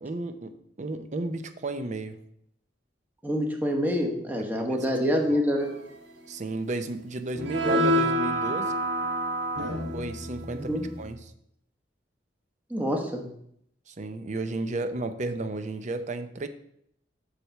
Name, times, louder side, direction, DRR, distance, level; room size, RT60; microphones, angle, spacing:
voice 1, 0.0-2.2 5.3-5.4 6.3-8.7 9.9-11.2 13.9-16.5, right 2 dB, 40° right, 9 dB, 0.6 m, -33 dB
voice 2, 3.2-5.7 10.6-10.8 12.7-13.2, equal, 10° right, 1 dB, 1.0 m, -26 dB
sound 1, 7.3-11.1, equal, 90° right, 1.5 m, -27 dB
7.5 x 3.3 x 6.3 m, 0.71 s
head